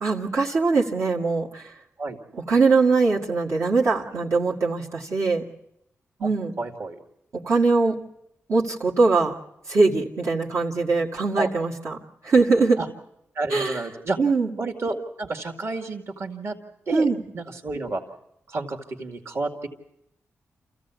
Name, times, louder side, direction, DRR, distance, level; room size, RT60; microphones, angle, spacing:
voice 1, 0.0-1.7 2.3-5.4 6.2-6.5 7.3-8.0 8.5-9.3 9.7-12.0 12.2-12.8 13.5-13.8 14.2-14.5 16.9-17.2, right 4 dB, 75° right, -5 dB, 1.9 m, -21 dB
voice 2, 6.6-7.0 11.4-11.5 12.8-12.9 13.4-14.2 14.6-16.6 16.9-17.1 17.3-18.0 18.5-19.7, right 3 dB, 60° right, 4 dB, 2.1 m, -30 dB
27.0 x 15.0 x 8.2 m, 0.82 s
cardioid pair, 65°, 5 cm